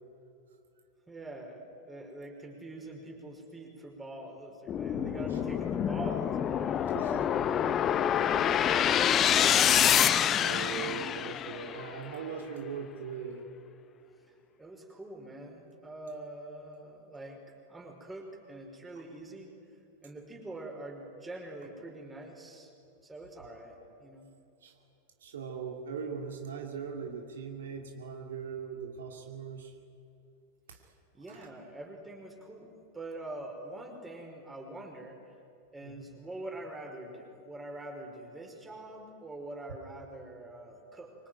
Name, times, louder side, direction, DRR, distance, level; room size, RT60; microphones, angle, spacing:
voice 1, 1.1-7.8 8.3-9.7 14.3-19.5 20.0-22.7 23.0-24.3 31.1-35.3 35.7-41.1, right 2 dB, 10° right, 3 dB, 5.3 m, -45 dB
sound 1, 4.7-11.9, left 9 dB, 30° left, 1.1 m, -27 dB
voice 2, 4.9-5.3 6.9-7.4 8.3-8.7 10.4-13.4 24.6-24.7 25.2-29.7 30.7-30.8 31.3-31.5 35.8-36.1, right 6 dB, 65° right, 3 dB, 2.7 m, -40 dB
26.0 x 24.5 x 9.4 m, 2.8 s
figure-of-eight pair, 90°, 0 cm